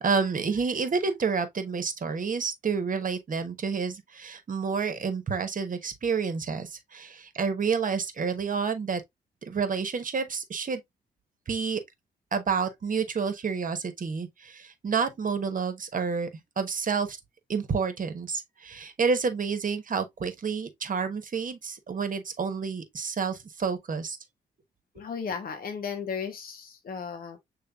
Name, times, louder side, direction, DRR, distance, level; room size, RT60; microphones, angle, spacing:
voice 1, 0.0-9.0 9.4-10.8 11.5-11.8 12.3-16.3 16.6-17.2 17.5-24.2, right 5 dB, 50° right, 1.1 m, -29 dB
voice 2, 25.0-27.4, left 6 dB, 55° left, 0.8 m, -35 dB
6.6 x 3.2 x 2.3 m
supercardioid pair, 45°, 18 cm